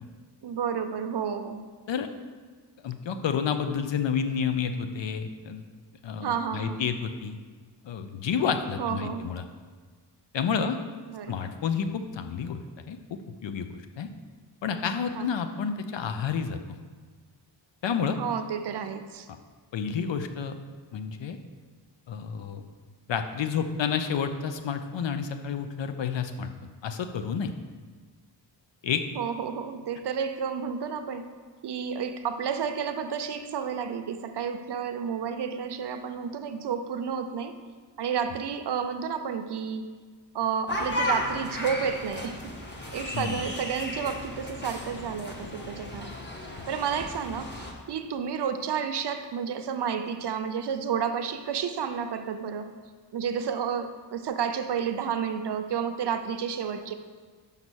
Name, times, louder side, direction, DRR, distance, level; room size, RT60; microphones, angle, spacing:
voice 1, 0.4-1.6 6.2-6.9 8.8-9.3 11.1-11.3 15.1-15.3 18.2-19.3 29.2-31.3 31.6-37.5 38.0-39.8 40.3-42.5 42.9-46.1 46.7-52.7 53.1-56.9, right 7 dB, 65° right, 7 dB, 0.6 m, -31 dB
voice 2, 2.8-5.6 6.0-7.4 7.8-9.4 10.3-10.8 11.3-12.6 12.9-14.1 14.6-16.6 17.8-18.2 19.7-20.5 20.9-21.4 22.1-22.6 23.1-26.5 26.8-27.5 28.8-29.0 43.1-43.4, left 6 dB, 85° left, 8 dB, 0.7 m, -30 dB
sound 1, 40.7-47.7, left 1 dB, 25° left, 0.9 m, -34 dB
5.7 x 5.3 x 6.2 m, 1.5 s
wide cardioid pair, 160°, 43 cm